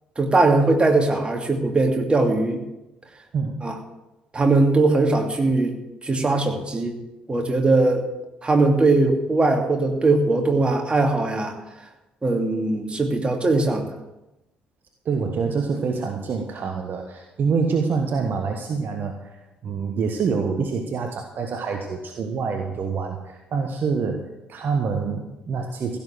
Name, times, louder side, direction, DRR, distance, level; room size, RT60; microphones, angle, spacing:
voice 1, 0.2-2.6 3.6-3.7 4.3-5.7 6.0-7.0 7.3-8.0 8.4-11.5 12.2-13.9, right 2 dB, 25° right, 2 dB, 2.7 m, -20 dB
voice 2, 3.3-3.8 15.0-26.0, right 5 dB, 50° right, 4 dB, 1.3 m, -26 dB
16.0 x 7.3 x 7.7 m, 0.97 s
figure-of-eight pair, 45°, 4 cm